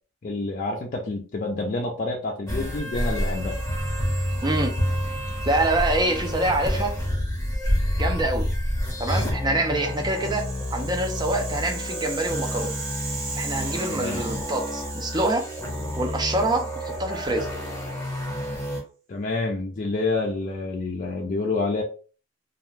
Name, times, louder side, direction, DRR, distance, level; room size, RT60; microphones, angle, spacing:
voice 1, 0.2-3.6 13.9-14.2 19.1-21.8, left 3 dB, 40° left, -1 dB, 0.4 m, -28 dB
sound 1, 2.5-18.8, equal, 15° left, 0.9 m, -29 dB
voice 2, 4.4-4.7 5.5-6.9 8.0-8.5 9.0-12.7 13.4-15.5 16.0-17.5, right 2 dB, 20° right, 3 dB, 0.5 m, -25 dB
Rattle (instrument), 9.8-18.0, right 3 dB, 70° right, 1.4 m, -38 dB
2.4 x 2.1 x 3.2 m, 0.37 s
head